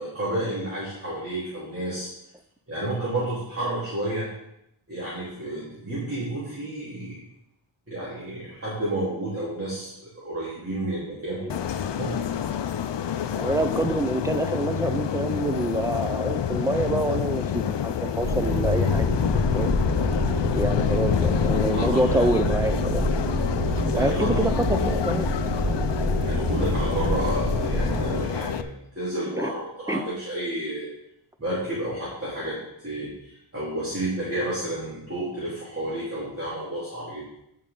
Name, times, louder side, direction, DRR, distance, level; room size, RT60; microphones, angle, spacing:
voice 1, 0.0-2.1 2.7-4.3 4.9-7.2 7.9-11.4 12.0-12.2 21.7-22.3 23.9-24.4 26.2-30.9 31.4-32.6 32.8-37.2, right 1 dB, 30° right, -9 dB, 2.9 m, -31 dB
sound 1, 11.5-28.6, left 9 dB, 60° left, 0.6 m, -27 dB
voice 2, 13.3-19.1 19.5-19.7 20.5-23.0 23.9-25.3 29.3-29.5 29.9-30.0, right 1 dB, 5° right, 8 dB, 0.6 m, -26 dB
sound 2, 18.2-28.2, equal, 75° right, 4.2 m, -27 dB
14.5 x 5.6 x 3.8 m, 0.80 s
wide cardioid pair, 140°, 50 cm